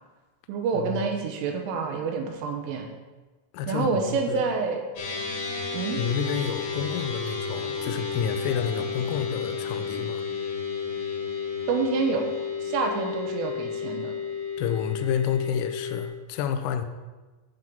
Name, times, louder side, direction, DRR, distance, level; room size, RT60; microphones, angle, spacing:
voice 1, 0.5-2.9 3.7-4.8 5.7-6.0 11.7-12.3 12.6-14.1, right 5 dB, 85° right, 3 dB, 3.4 m, -27 dB
voice 2, 3.5-4.4 6.0-10.3 14.6-16.9, left 8 dB, 90° left, 8 dB, 3.3 m, -29 dB
Wind instrument woodwind instrument, 4.2-10.3, right 4 dB, 45° right, 1.9 m, -45 dB
sound 1, 5.0-16.1, left 6 dB, 60° left, 3.6 m, -32 dB
10.5 x 3.8 x 7.5 m, 1.2 s
omnidirectional pair, 5.8 m